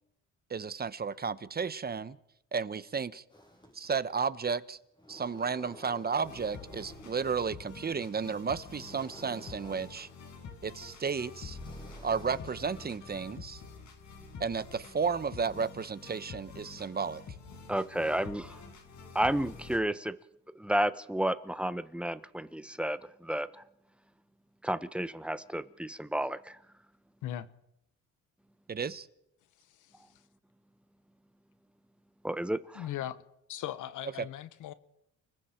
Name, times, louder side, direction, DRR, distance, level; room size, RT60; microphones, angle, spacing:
voice 1, 0.5-2.2 2.5-3.2 3.7-4.8 5.1-10.1 10.6-11.6 12.0-13.6 14.4-17.2 28.7-29.1, right 5 dB, 30° right, 1.0 m, -33 dB
sound 1, 3.3-4.3 4.7-7.7 8.1-13.7, equal, 15° left, 7.3 m, -55 dB
sound 2, 6.2-19.8, left 4 dB, 65° left, 5.5 m, -47 dB
voice 2, 17.7-18.6 19.1-20.2 20.5-23.6 24.6-26.6 32.2-32.9, right 1 dB, 5° right, 1.0 m, -32 dB
voice 3, 29.6-30.1 32.7-33.2 33.5-34.7, left 12 dB, 85° left, 1.3 m, -39 dB
29.5 x 20.5 x 4.5 m
cardioid pair, 90°, 30 cm